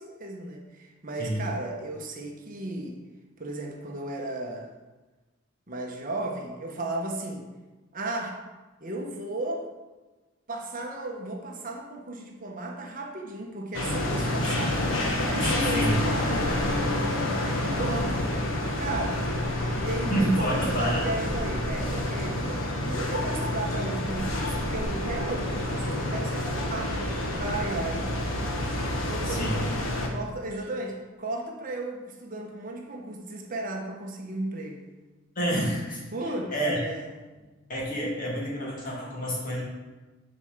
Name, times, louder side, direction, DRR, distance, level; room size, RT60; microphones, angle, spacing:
voice 1, 0.0-3.0 3.4-4.7 5.7-7.5 7.9-8.4 8.8-9.7 10.5-14.8 15.3-16.8 17.5-18.3 18.8-19.3 19.8-27.1 27.3-28.1 29.0-29.5 30.1-34.8 36.1-37.3, right 2 dB, 40° right, 1 dB, 1.0 m, -35 dB
sound 1, 13.7-30.1, left 1 dB, 80° left, 1.3 m, -28 dB
voice 2, 20.1-21.1 29.2-29.6 35.4-36.0 36.5-36.8 37.7-39.6, right 1 dB, 40° left, -4 dB, 2.4 m, -28 dB
7.1 x 4.5 x 6.6 m, 1.2 s
head